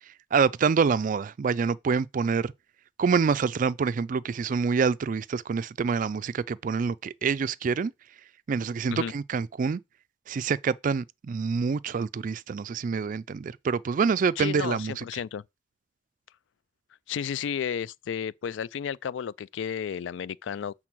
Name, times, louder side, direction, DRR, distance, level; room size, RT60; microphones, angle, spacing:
voice 1, 0.3-2.5 3.0-7.9 8.5-9.8 10.3-15.0, right 5 dB, 45° right, 0.3 m, -26 dB
voice 2, 14.4-15.4 17.1-20.7, left 8 dB, 80° left, 0.3 m, -32 dB
7.5 x 3.7 x 6.1 m
head